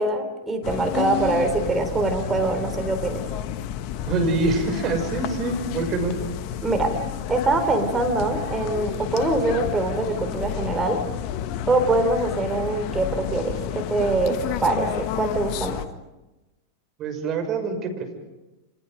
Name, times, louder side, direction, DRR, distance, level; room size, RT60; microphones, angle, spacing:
voice 1, 0.0-3.2 6.6-7.0 7.3-11.0 11.7-15.8, right 2 dB, 20° right, 5 dB, 3.8 m, -24 dB
sound 1, 0.6-15.9, left 11 dB, 50° left, 1.4 m, -31 dB
voice 2, 4.1-6.2 17.0-18.1, right 3 dB, 40° right, 5 dB, 6.4 m, -25 dB
28.0 x 26.5 x 5.3 m, 1.0 s
hypercardioid pair, 95°, 0 cm